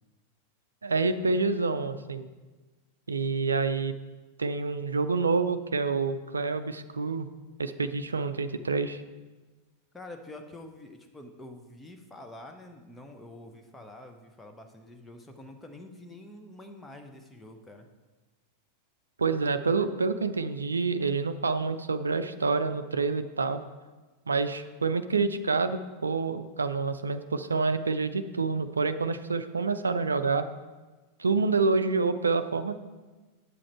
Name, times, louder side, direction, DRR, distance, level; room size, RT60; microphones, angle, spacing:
voice 1, 0.8-2.3 3.1-3.9 4.4-7.3 7.6-9.0 19.2-23.6 24.3-30.5 31.2-32.8, right 4 dB, 75° right, 10 dB, 0.4 m, -27 dB
voice 2, 9.9-17.9, left 1 dB, 10° left, 4 dB, 0.8 m, -47 dB
8.3 x 7.5 x 4.4 m, 1.3 s
figure-of-eight pair, 90°, 0 cm